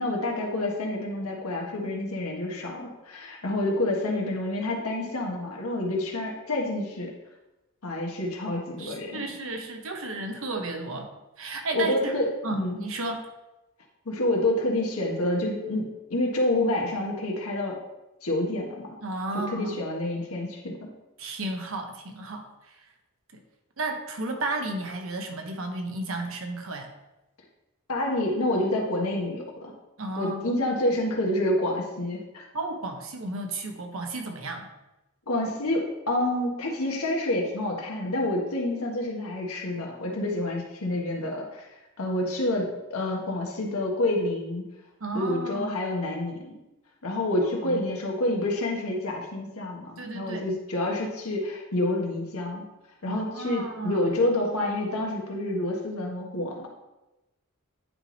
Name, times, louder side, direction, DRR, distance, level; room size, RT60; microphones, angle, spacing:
voice 1, 0.0-7.1 7.8-9.2 11.5-12.8 14.0-17.8 18.2-18.9 19.3-20.9 27.9-29.7 30.2-32.4 35.3-41.7 42.0-44.6 45.1-46.6 47.0-52.6 53.0-56.7, left 1 dB, 85° left, -1 dB, 1.5 m, -28 dB
voice 2, 8.8-12.1 12.4-13.2 19.0-19.8 21.2-22.8 23.3-23.4 23.8-26.9 30.0-30.5 32.5-34.7 45.0-45.8 47.6-47.8 50.0-50.5 53.1-54.1, right 2 dB, 70° right, 3 dB, 0.9 m, -33 dB
9.5 x 3.4 x 4.0 m, 0.99 s
head